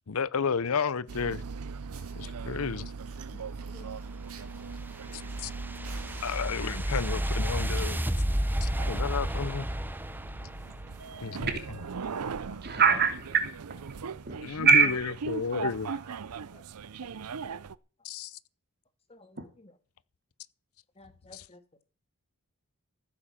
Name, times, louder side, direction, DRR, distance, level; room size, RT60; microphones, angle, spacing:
voice 1, 0.1-1.4 2.2-2.9 5.1-5.5 6.2-8.0 8.6-9.7 11.2-11.4 14.4-14.7 15.3-15.9 18.0-18.3, left 6 dB, 70° left, 0.6 m, -32 dB
sound 1, 1.1-17.8, right 5 dB, 90° right, 0.6 m, -40 dB
Fire, 1.4-1.5 1.9-2.3 2.9-5.5 5.8-7.0 7.8-8.1 8.4-8.5 8.9-9.0 9.2-9.5 10.0-10.1 11.0-11.1, right 7 dB, 70° right, 2.5 m, -54 dB
sound 2, 4.0-11.3, equal, 10° right, 0.8 m, -32 dB
voice 2, 4.9-5.4 11.1-11.5 12.6-15.1 15.5-16.1 19.4-19.5, right 5 dB, 45° right, 2.9 m, -27 dB
voice 3, 11.1-11.5 12.5-12.6 14.4-14.5 16.5-16.6 17.0-17.1 17.4-17.6 19.1-19.7 20.9-21.8, left 2 dB, 25° left, 1.9 m, -54 dB
15.0 x 8.6 x 7.4 m
head